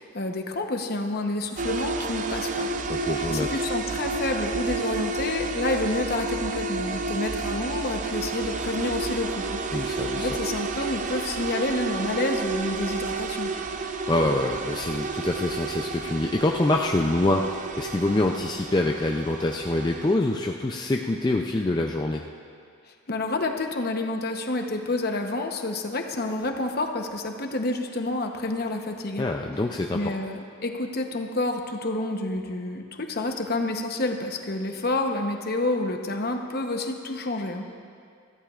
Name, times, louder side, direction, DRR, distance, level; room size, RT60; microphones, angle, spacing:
voice 1, 0.0-2.7 3.3-9.6 10.2-13.5 23.1-29.3 29.9-37.7, left 2 dB, 45° left, 4 dB, 0.9 m, -29 dB
sound 1, 1.6-20.2, right 3 dB, 35° right, 0.5 m, -31 dB
voice 2, 2.9-3.6 9.7-10.3 14.1-22.2 29.2-30.1, left 2 dB, 20° left, 1 dB, 0.4 m, -25 dB
21.5 x 14.5 x 2.4 m, 2.3 s
head